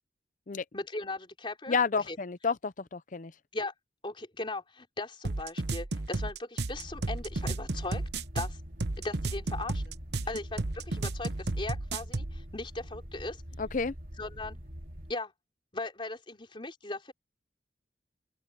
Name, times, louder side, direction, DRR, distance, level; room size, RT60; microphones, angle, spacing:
voice 1, 0.7-1.8 2.1-2.2 3.5-3.7 4.0-8.0 8.3-8.6 9.0-9.9 10.3-13.4 14.2-14.6 15.1-15.3 15.7-17.1, left 2 dB, 30° left, 3.7 m, -38 dB
voice 2, 1.7-3.3 13.6-13.9, left 5 dB, 45° left, 0.6 m, -30 dB
sound 1, 5.2-12.3, right 2 dB, 70° right, 1.0 m, -33 dB
sound 2, 6.7-15.1, equal, 55° right, 4.0 m, -44 dB
open air
head